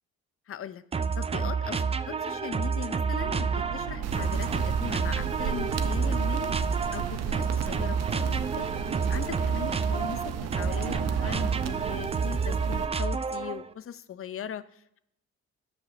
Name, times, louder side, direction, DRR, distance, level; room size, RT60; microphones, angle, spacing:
voice 1, 0.5-0.8 1.2-6.6 6.9-8.7 9.1-10.2 10.5-15.0, left 9 dB, 45° left, 14 dB, 0.7 m, -39 dB
sound 1, 0.9-13.7, right 5 dB, 20° right, 0.4 m, -29 dB
sound 2, 3.2-12.0, right 6 dB, 75° right, 1.1 m, -36 dB
sound 3, 4.0-12.9, right 9 dB, 60° right, 0.7 m, -36 dB
10.0 x 6.0 x 6.7 m, 0.78 s
cardioid pair, 90°, 30 cm